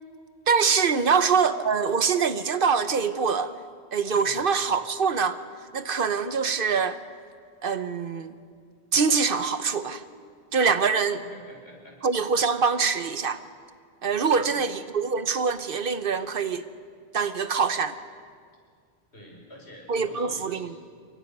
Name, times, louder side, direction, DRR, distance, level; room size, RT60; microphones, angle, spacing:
voice 1, 0.5-3.5 3.9-5.4 5.7-7.0 7.6-8.3 8.9-10.0 10.5-11.2 12.0-13.4 14.0-16.6 17.1-17.9 19.9-20.8, right 5 dB, 60° right, 12 dB, 1.0 m, -24 dB
voice 2, 11.1-12.0 14.3-14.6 19.1-20.6, equal, 85° left, -1 dB, 5.7 m, -47 dB
28.5 x 23.5 x 5.4 m, 2.1 s
omnidirectional pair, 1.1 m